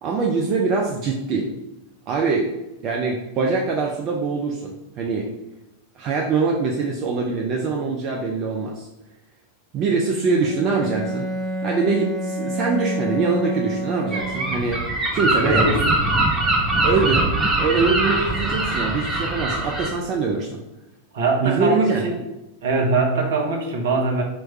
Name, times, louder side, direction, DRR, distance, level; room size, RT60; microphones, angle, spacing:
voice 1, 0.0-1.5 2.1-2.5 2.8-5.3 6.0-8.9 9.7-11.3 11.6-15.7 16.8-17.3 17.6-20.6 21.4-22.0, right 4 dB, 35° right, 0 dB, 0.5 m, -23 dB
Bowed string instrument, 10.4-14.8, right 1 dB, 15° left, 0.7 m, -28 dB
Gull seagull, 14.1-19.9, right 2 dB, 15° right, 1.0 m, -22 dB
voice 2, 15.4-15.8 21.1-22.2 22.6-24.2, right 3 dB, 60° right, 1 dB, 0.9 m, -22 dB
3.1 x 3.1 x 4.6 m, 0.99 s
figure-of-eight pair, 90°, 0 cm